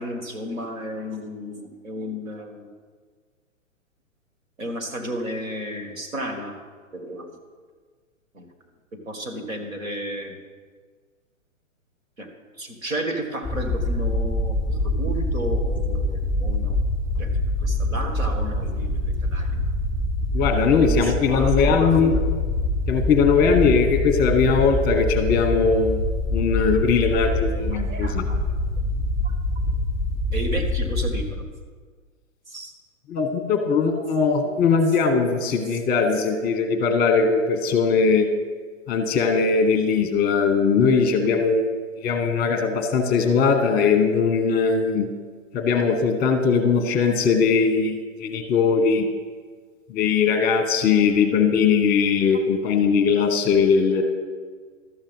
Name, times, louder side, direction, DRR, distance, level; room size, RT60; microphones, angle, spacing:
voice 1, 0.0-2.7 4.6-6.6 6.9-7.3 8.3-8.4 9.0-10.4 12.2-12.3 12.6-16.8 17.2-19.6 20.8-21.8 26.6-26.7 27.2-28.4 29.2-29.3 30.3-31.4 32.5-32.7, right 1 dB, 80° right, 3 dB, 2.2 m, -33 dB
sound 1, 13.4-31.3, left 1 dB, ahead, 3.2 m, -25 dB
voice 2, 20.3-22.2 22.9-26.0 26.3-28.3 33.1-38.3 38.9-41.7 42.0-45.1 45.5-49.0 49.9-54.0, left 5 dB, 25° left, 6 dB, 1.1 m, -20 dB
12.5 x 7.1 x 5.5 m, 1.5 s
hypercardioid pair, 125°, 40 cm